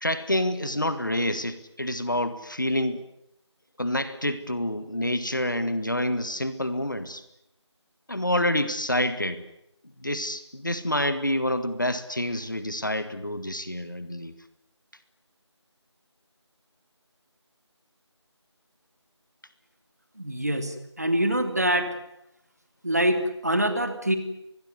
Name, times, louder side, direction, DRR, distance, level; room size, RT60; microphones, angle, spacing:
voice 1, 0.0-3.0 3.8-7.2 8.1-9.4 10.0-14.3, left 1 dB, 45° left, 12 dB, 1.8 m, -27 dB
voice 2, 20.2-21.9 22.8-24.2, right 1 dB, 35° right, 7 dB, 2.9 m, -25 dB
25.0 x 20.5 x 9.6 m, 0.82 s
figure-of-eight pair, 180°, 15 cm